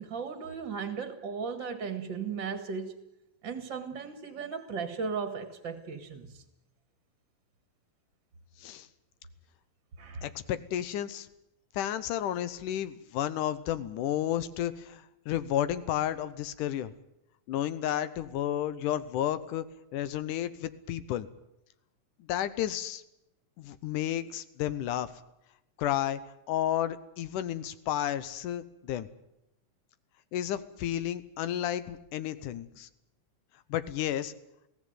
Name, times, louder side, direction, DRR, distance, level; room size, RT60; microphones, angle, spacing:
voice 1, 0.0-3.0 3.4-6.4 10.0-10.3, right 5 dB, 45° right, 2.0 m, -36 dB
voice 2, 10.2-11.3 11.7-16.9 17.5-19.6 19.9-21.3 22.3-23.0 23.6-25.1 25.8-26.2 26.5-29.1 30.3-32.9 33.7-34.3, left 11 dB, 90° left, 2.6 m, -32 dB
21.5 x 16.5 x 9.4 m
omnidirectional pair, 3.5 m